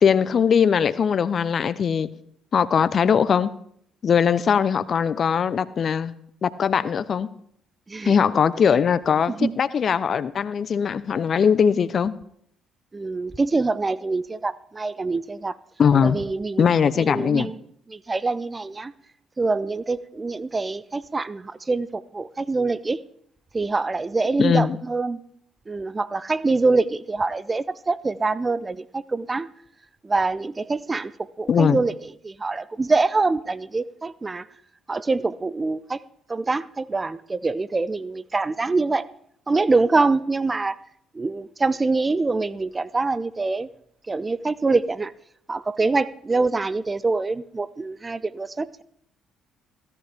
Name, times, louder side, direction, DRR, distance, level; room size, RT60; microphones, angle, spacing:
voice 1, 0.0-2.1 2.5-3.5 4.0-6.1 6.4-7.3 8.0-12.1 15.8-16.2 16.6-17.5 24.4-24.7 31.5-31.8, left 7 dB, 50° left, 0.7 m, -20 dB
voice 2, 7.9-8.2 9.4-9.5 12.9-15.6 16.0-16.7 17.0-17.6 17.9-18.9 19.4-23.0 23.5-25.2 25.7-29.5 30.0-31.9 32.2-34.5 34.9-36.0 36.3-39.1 39.5-40.8 41.1-43.7 44.1-45.1 45.5-48.8, right 3 dB, 25° right, 0.6 m, -25 dB
16.5 x 13.0 x 3.5 m
hypercardioid pair, 55°, 0 cm